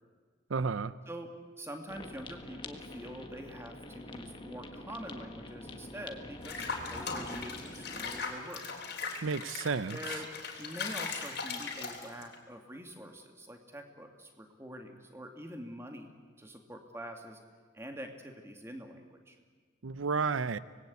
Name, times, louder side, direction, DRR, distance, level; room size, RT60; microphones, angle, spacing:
voice 1, 0.5-0.9 9.2-10.0 19.8-20.6, right 5 dB, 85° right, 16 dB, 0.6 m, -31 dB
voice 2, 1.1-8.6 9.9-10.3 10.6-16.1 16.4-17.4 17.7-19.4, equal, 15° right, 4 dB, 2.1 m, -45 dB
sound 1, 1.9-8.2, left 1 dB, 25° left, 1.5 m, -46 dB
Water / Bathtub (filling or washing), 6.4-12.4, left 4 dB, 50° left, 3.5 m, -39 dB
25.5 x 20.0 x 8.5 m, 1.5 s
head